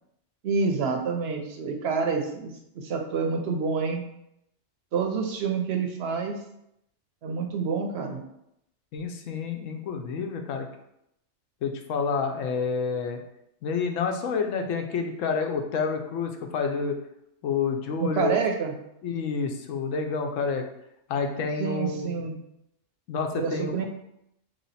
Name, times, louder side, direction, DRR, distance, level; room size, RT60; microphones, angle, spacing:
voice 1, 0.4-4.0 4.9-6.4 7.2-8.2 18.0-18.7 21.6-22.4 23.3-23.9, right 5 dB, 65° right, 3 dB, 0.7 m, -28 dB
voice 2, 8.9-10.7 11.6-13.2 13.6-17.0 17.4-18.3 19.0-20.6 21.1-22.1 23.1-23.9, left 5 dB, 80° left, 4 dB, 1.0 m, -29 dB
3.1 x 2.8 x 4.0 m, 0.79 s
omnidirectional pair, 1.3 m